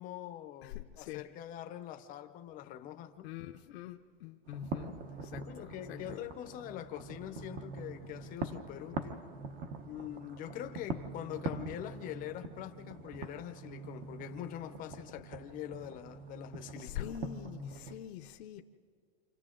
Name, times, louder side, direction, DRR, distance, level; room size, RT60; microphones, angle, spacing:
voice 1, 0.0-3.3 5.4-9.2 9.9-17.1, left 12 dB, 25° left, 0.7 m, -44 dB
voice 2, 0.6-1.2 3.2-6.2 16.8-18.6, left 12 dB, 75° left, 0.8 m, -44 dB
sound 1, 4.4-17.9, right 3 dB, 25° right, 0.9 m, -44 dB
29.5 x 26.5 x 3.8 m
supercardioid pair, 165°, 32 cm